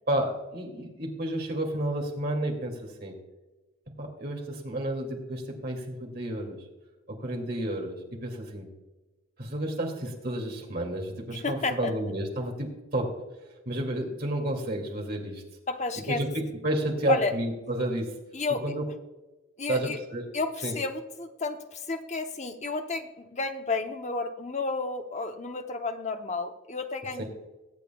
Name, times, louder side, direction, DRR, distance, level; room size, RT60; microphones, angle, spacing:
voice 1, 0.1-3.1 4.0-6.6 7.1-8.7 9.4-15.4 16.1-18.1 18.6-18.8 19.7-20.2 20.6-20.7 27.1-27.2, right 1 dB, 45° right, 1 dB, 2.3 m, -31 dB
voice 2, 11.3-11.9 15.7-16.2 17.1-17.3 18.3-18.6 19.6-20.0 20.3-27.2, left 3 dB, 35° left, 6 dB, 0.8 m, -31 dB
22.0 x 8.4 x 2.3 m, 1.1 s
head